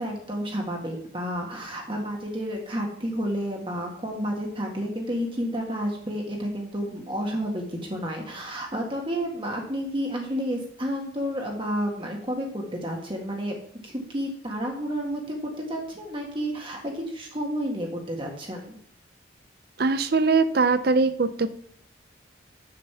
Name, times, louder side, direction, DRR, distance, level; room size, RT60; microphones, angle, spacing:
voice 1, 0.0-13.6 13.8-18.8, equal, 25° right, 0 dB, 1.7 m, -31 dB
voice 2, 19.8-21.5, right 4 dB, 50° right, 12 dB, 0.6 m, -21 dB
6.9 x 6.7 x 6.8 m, 0.62 s
head